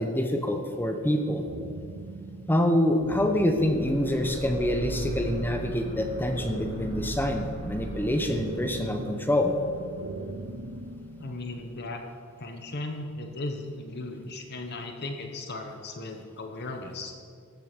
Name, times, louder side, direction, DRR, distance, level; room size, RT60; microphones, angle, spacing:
voice 1, 0.0-1.5 2.5-9.5, left 1 dB, 10° left, 5 dB, 0.8 m, -26 dB
sound 1, 1.4-11.4, right 2 dB, 75° right, 0.7 m, -40 dB
sound 2, 3.5-11.8, right 1 dB, 35° right, 1.5 m, -41 dB
voice 2, 11.2-12.0 12.4-17.1, left 2 dB, 50° left, 4 dB, 1.0 m, -36 dB
14.5 x 7.6 x 5.1 m, 2.2 s
head